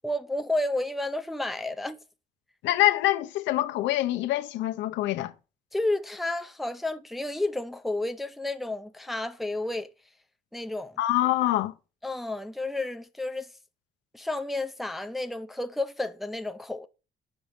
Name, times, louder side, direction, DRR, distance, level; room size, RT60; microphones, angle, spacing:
voice 1, 0.0-2.0 5.7-9.9 10.5-11.0 12.0-13.5 14.1-16.9, left 2 dB, ahead, 0.4 m, -31 dB
voice 2, 2.6-5.3 11.0-11.7, left 15 dB, 80° left, 0.7 m, -25 dB
6.1 x 5.2 x 5.2 m
cardioid pair, 135°, 19 cm